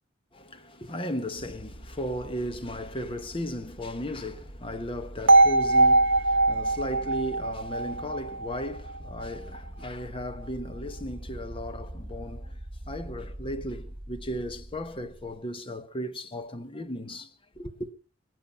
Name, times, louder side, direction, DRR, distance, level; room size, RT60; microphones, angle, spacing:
voice 1, 0.3-12.6 12.9-17.9, equal, 25° left, 1.1 m, -36 dB
sound 1, 1.4-15.4, right 1 dB, 50° right, 3.0 m, -43 dB
sound 2, 5.3-9.3, right 2 dB, 70° right, 1.0 m, -22 dB
22.0 x 9.1 x 5.6 m
head